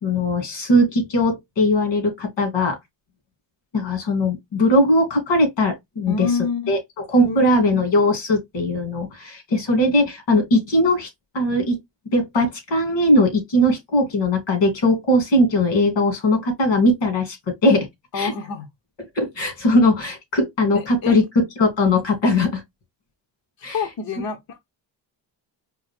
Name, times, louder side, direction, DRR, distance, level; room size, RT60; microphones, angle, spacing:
voice 1, 0.0-2.8 3.7-6.3 6.7-6.8 7.1-11.1 11.3-11.8 12.1-17.9 18.1-18.3 19.1-21.2 21.6-22.6 23.6-23.8, left 1 dB, 80° left, 2.6 m, -19 dB
voice 2, 6.1-6.8 7.2-7.8 18.1-18.7 20.7-21.1 23.7-24.6, left 5 dB, 55° left, 0.9 m, -27 dB
4.7 x 2.5 x 3.3 m
cardioid pair, 90°, 44 cm